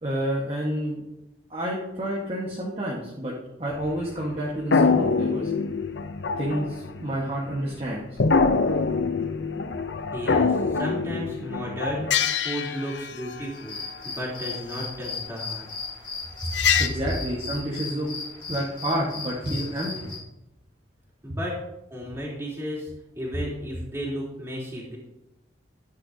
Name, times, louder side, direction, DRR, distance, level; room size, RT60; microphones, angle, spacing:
voice 1, 0.0-1.0 1.5-3.3 3.6-5.5 6.4-8.0 16.5-18.1 18.5-20.1, right 1 dB, 30° right, -5 dB, 1.4 m, -29 dB
sound 1, 3.8-4.4 4.7-7.6 8.0-13.4 16.5-16.9, left 5 dB, 70° left, 0.6 m, -24 dB
voice 2, 10.1-13.8 14.0-15.7 16.5-16.6 21.2-21.6 21.9-22.9 23.2-25.0, equal, 15° right, -6 dB, 3.3 m, -33 dB
sound 2, 13.5-20.2, left 4 dB, 25° left, 3.2 m, -37 dB
12.5 x 9.5 x 2.8 m, 0.93 s
head